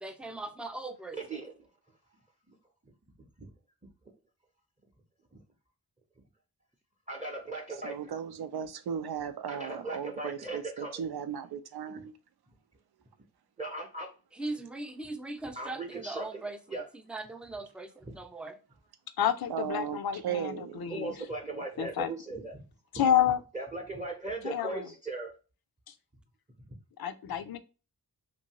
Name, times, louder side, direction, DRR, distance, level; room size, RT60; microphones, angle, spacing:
voice 1, 0.0-1.4 14.3-18.6, right 2 dB, 5° right, 0.3 m, -40 dB
voice 2, 1.2-1.5 3.4-3.5 7.1-8.1 9.5-11.0 13.6-14.1 15.5-16.8 18.0-18.1 20.9-22.6 23.5-25.3, right 2 dB, 20° right, 0.7 m, -38 dB
voice 3, 7.8-12.1 19.5-20.8 21.5-21.6, right 8 dB, 80° right, 0.5 m, -36 dB
voice 4, 19.2-21.1 21.8-22.1 22.9-23.4 24.4-24.8 27.0-27.6, left 9 dB, 70° left, 0.5 m, -29 dB
2.7 x 2.5 x 2.9 m
wide cardioid pair, 90°, 38 cm